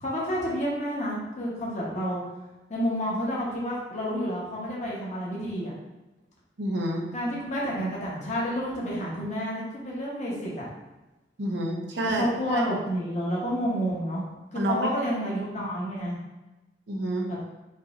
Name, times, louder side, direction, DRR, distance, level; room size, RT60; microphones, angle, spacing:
voice 1, 0.0-2.2 2.7-5.7 7.1-10.6 12.0-14.2 14.5-16.1 17.3-17.4, equal, 40° left, -6 dB, 1.1 m, -29 dB
voice 2, 6.6-7.1 11.4-12.3 12.5-12.6 14.5-14.9 16.9-17.3, right 1 dB, 80° right, 1 dB, 0.8 m, -28 dB
5.4 x 3.0 x 2.5 m, 1.1 s
head